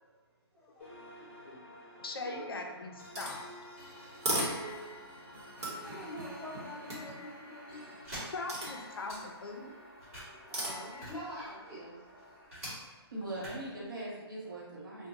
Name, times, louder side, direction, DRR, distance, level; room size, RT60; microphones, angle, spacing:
sound 1, 0.8-12.5, equal, 25° left, 0.8 m, -52 dB
voice 1, 1.2-1.6 2.0-3.5 8.3-9.7 13.2-13.3, left 3 dB, 60° left, 3 dB, 0.4 m, -41 dB
voice 2, 2.2-2.6 4.3-4.9 5.6-8.0 10.1-12.0 13.3-13.4, equal, 10° right, -17 dB, 0.7 m, -45 dB
sound 2, 3.1-5.1 5.6-7.4 8.5-9.4 10.5-11.2, right 1 dB, 80° right, 0.9 m, -38 dB
sound 3, 8.0-9.5 9.9-12.7 13.2-13.9, equal, 35° right, 1.2 m, -46 dB
voice 3, 13.1-15.1, right 1 dB, 50° right, -6 dB, 0.8 m, -40 dB
2.6 x 2.1 x 2.6 m, 1.3 s
hypercardioid pair, 180°, 14 cm